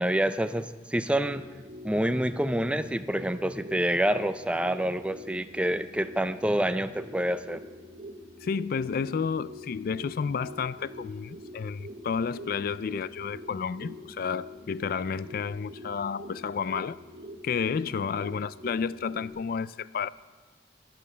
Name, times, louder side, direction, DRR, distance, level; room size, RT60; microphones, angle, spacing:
voice 1, 0.0-1.4 1.8-7.6, right 1 dB, 5° right, 0.5 m, -27 dB
sound 1, 0.9-19.3, left 1 dB, 45° right, 1.2 m, -45 dB
voice 2, 8.4-17.0 17.4-20.1, left 6 dB, 55° left, 0.4 m, -31 dB
12.0 x 11.5 x 8.4 m
head